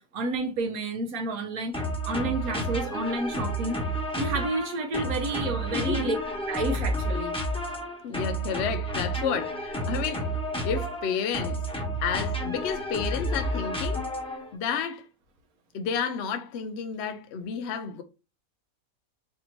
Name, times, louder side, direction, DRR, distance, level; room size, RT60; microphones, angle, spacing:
voice 1, 0.0-1.7 2.0-3.8 4.2-6.2 6.5-7.4, right 2 dB, 75° right, 1.2 m, -30 dB
sound 1, 1.7-14.5, right 1 dB, 5° left, 0.9 m, -31 dB
voice 2, 5.7-6.2 8.0-10.3 10.6-11.6 12.0-14.1 14.5-15.1 15.7-18.0, left 7 dB, 65° left, 0.7 m, -31 dB
3.4 x 2.7 x 4.3 m
omnidirectional pair, 1.5 m